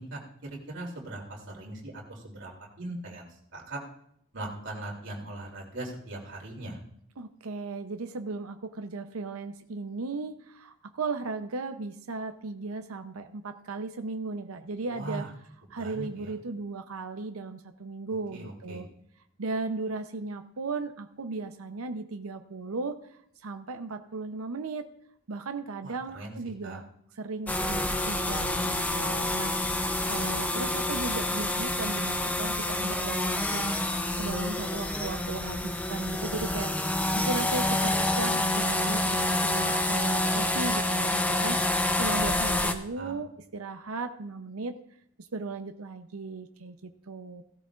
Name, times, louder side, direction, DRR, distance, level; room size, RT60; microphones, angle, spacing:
voice 1, 0.0-2.5 2.8-3.3 3.5-3.8 4.3-6.8 14.9-15.3 15.8-16.3 18.3-18.8 25.8-26.3 26.6-26.8 42.1-42.2 42.5-42.7 43.0-43.1, right 1 dB, 60° right, -2 dB, 3.0 m, -40 dB
voice 2, 7.2-15.3 15.7-18.9 19.4-24.9 25.3-26.9 27.1-29.5 30.1-33.7 34.2-41.6 42.0-44.8 45.2-47.4, right 3 dB, 90° right, 8 dB, 0.7 m, -36 dB
sound 1, 27.5-42.7, left 1 dB, 5° left, 0.5 m, -28 dB
16.0 x 13.0 x 2.5 m, 0.68 s
head